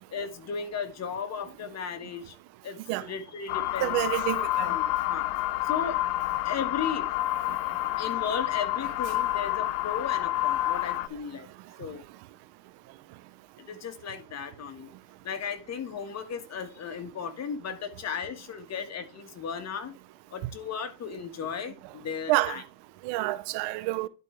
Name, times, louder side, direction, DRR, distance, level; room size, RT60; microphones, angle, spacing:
voice 1, 0.1-2.4 2.6-3.9 4.4-5.3 5.6-6.0 6.4-7.1 8.0-11.5 11.8-12.0 13.6-14.9 15.2-19.9 20.3-22.6, left 6 dB, 40° left, 1.7 m, -35 dB
sound 1, 3.5-11.1, left 15 dB, 80° left, 0.7 m, -29 dB
voice 2, 3.8-4.7 22.3-22.6 23.0-24.1, right 18 dB, 70° right, 0.8 m, -28 dB
11.0 x 5.0 x 3.4 m
supercardioid pair, 105°, 40 cm